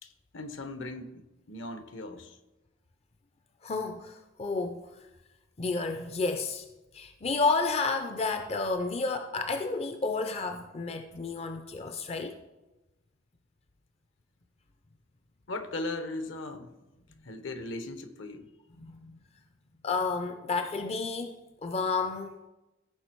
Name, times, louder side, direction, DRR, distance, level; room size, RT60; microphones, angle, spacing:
voice 1, 0.0-2.4 15.5-16.7 17.2-18.5, left 2 dB, 65° left, 0.9 m, -38 dB
voice 2, 3.6-4.9 5.6-6.6 6.9-12.4 18.8-19.2 19.8-21.3 21.6-22.4, left 4 dB, 30° left, 0.5 m, -31 dB
15.0 x 5.1 x 4.5 m
head